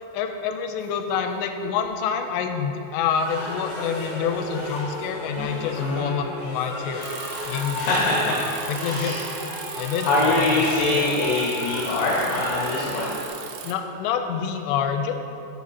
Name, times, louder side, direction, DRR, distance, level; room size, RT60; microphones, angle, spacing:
voice 1, 0.1-7.1 7.5-8.0 8.7-9.2 9.8-11.1 13.6-15.1, left 7 dB, 90° left, 6 dB, 2.8 m, -27 dB
sound 1, 3.1-13.3, left 1 dB, 55° left, 2.7 m, -34 dB
sound 2, 5.2-5.8, right 1 dB, 50° right, 2.5 m, -40 dB
voice 2, 5.8-6.1 7.7-8.4 8.8-9.2 10.0-13.1, left 2 dB, 70° left, -5 dB, 2.7 m, -23 dB
Bicycle, 7.0-13.7, right 8 dB, 80° right, 2.6 m, -38 dB
13.5 x 6.2 x 2.8 m, 2.9 s
omnidirectional pair, 5.0 m